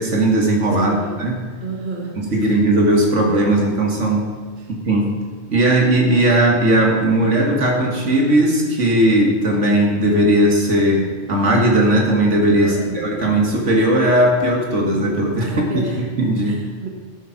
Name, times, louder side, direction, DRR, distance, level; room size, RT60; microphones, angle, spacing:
voice 1, 0.0-1.4 2.2-4.3 4.7-5.1 5.5-16.5, right 1 dB, 75° right, 0 dB, 2.2 m, -17 dB
voice 2, 0.7-1.2 1.6-2.6 4.6-4.7 12.6-13.4 15.4-16.0 16.4-16.9, right 4 dB, 45° right, 1 dB, 1.5 m, -31 dB
12.0 x 7.1 x 5.9 m, 1.6 s
omnidirectional pair, 1.2 m